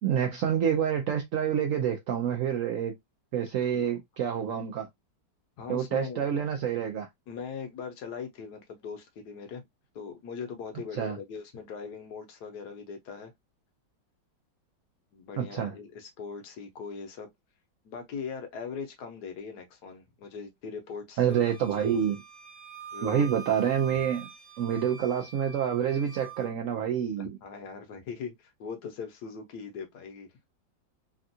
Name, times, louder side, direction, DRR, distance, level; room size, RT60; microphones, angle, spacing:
voice 1, 0.0-2.9 3.3-4.9 5.7-7.1 10.9-11.2 15.4-15.7 21.2-22.2 23.0-24.3 24.6-27.4, right 8 dB, 80° right, 0.7 m, -27 dB
voice 2, 5.6-6.3 7.3-9.6 9.9-13.3 15.1-17.3 17.8-21.2 21.8-22.0 22.9-23.3 27.2-30.3, left 6 dB, 65° left, 1.3 m, -40 dB
Wind instrument woodwind instrument, 21.3-26.5, right 6 dB, 35° right, 0.5 m, -45 dB
3.4 x 2.4 x 2.6 m
omnidirectional pair, 2.0 m